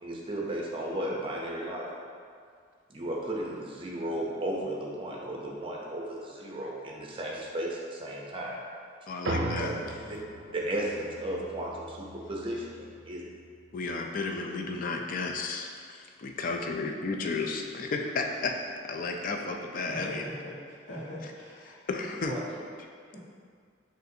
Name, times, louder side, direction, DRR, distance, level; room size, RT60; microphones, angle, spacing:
voice 1, 0.0-1.9 2.9-8.6 9.5-9.7 10.1-10.2 10.5-13.2 22.3-22.6, right 1 dB, 30° right, -3 dB, 0.6 m, -34 dB
voice 2, 9.1-9.7 13.7-18.5 18.8-20.2 21.9-22.3, left 3 dB, 45° left, 3 dB, 0.4 m, -33 dB
sound 1, 9.2-14.0, right 1 dB, 70° right, 0.5 m, -38 dB
voice 3, 19.9-21.8, left 1 dB, 80° left, -8 dB, 1.2 m, -41 dB
6.5 x 2.5 x 2.7 m, 2.1 s
head